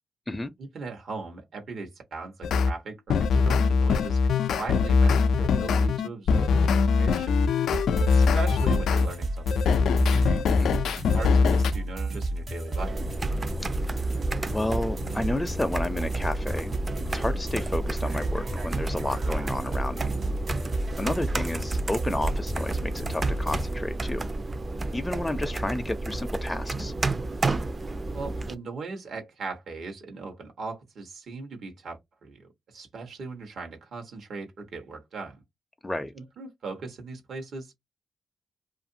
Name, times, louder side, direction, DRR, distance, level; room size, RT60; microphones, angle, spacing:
voice 1, 0.6-7.3 8.0-9.8 11.1-13.0 20.9-21.1 28.1-35.4 36.1-37.7, right 4 dB, 75° right, 1.0 m, -39 dB
sound 1, 2.4-2.7 3.1-9.1 9.5-11.7, left 5 dB, 85° left, 0.3 m, -22 dB
sound 2, 7.7-23.7, right 2 dB, 60° right, 1.2 m, -32 dB
sound 3, 12.8-28.5, right 2 dB, 40° right, 0.5 m, -31 dB
voice 2, 13.9-16.8 17.1-20.2 21.0-24.2 24.9-26.9 35.8-36.1, left 1 dB, 15° left, 0.5 m, -31 dB
2.6 x 2.5 x 2.6 m
supercardioid pair, 45°, 0 cm